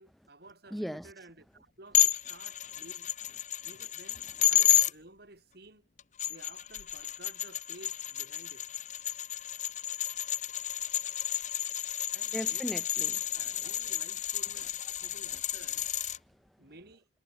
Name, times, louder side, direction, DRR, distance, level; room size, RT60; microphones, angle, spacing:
voice 1, 0.0-3.1 3.6-5.9 6.3-8.7 12.1-12.6 13.3-15.9 16.6-17.1, right 2 dB, 60° right, 4.7 m, -54 dB
voice 2, 0.7-1.1 12.3-13.7 14.5-14.7 16.2-16.7, equal, ahead, 1.4 m, -40 dB
sound 1, 1.9-4.9 6.0-16.2, left 12 dB, 40° left, 0.8 m, -31 dB
head